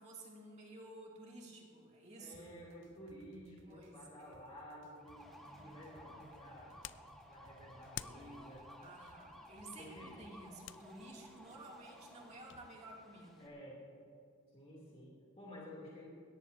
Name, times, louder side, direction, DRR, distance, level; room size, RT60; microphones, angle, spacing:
voice 1, 0.0-2.5 3.7-4.3 8.8-13.5, right 2 dB, 35° right, -2 dB, 2.6 m, -53 dB
voice 2, 2.2-6.7 7.3-8.6 9.8-10.1 13.4-13.8 14.5-16.1, equal, 30° left, -5 dB, 2.9 m, -53 dB
sound 1, 2.3-10.3, right 1 dB, 60° right, 1.7 m, -64 dB
sound 2, 5.0-13.5, equal, ahead, 1.5 m, -57 dB
sound 3, 5.9-12.7, left 11 dB, 60° left, 0.4 m, -54 dB
20.5 x 17.5 x 2.7 m, 2.5 s
head